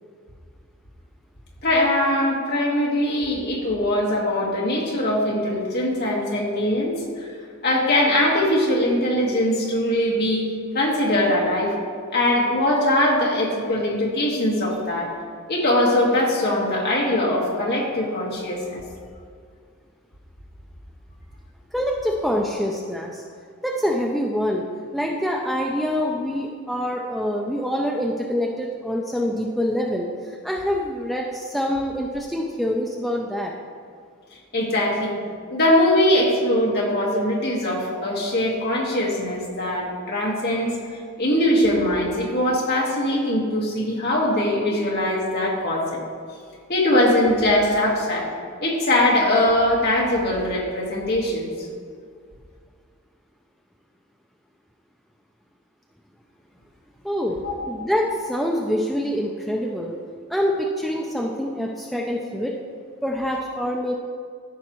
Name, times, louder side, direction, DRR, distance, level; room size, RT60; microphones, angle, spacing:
voice 1, 1.6-7.4 7.6-10.5 10.7-11.7 12.1-15.1 15.5-18.8 34.5-35.2 35.5-46.0 46.7-48.3 48.6-51.7 57.4-57.5, left 1 dB, 45° left, -3 dB, 1.6 m, -21 dB
voice 2, 21.7-23.2 23.6-24.6 24.9-33.5 57.0-57.4 57.7-60.0 60.3-62.6 63.0-63.9, equal, ahead, -1 dB, 0.4 m, -25 dB
14.0 x 5.8 x 3.0 m, 2.1 s
head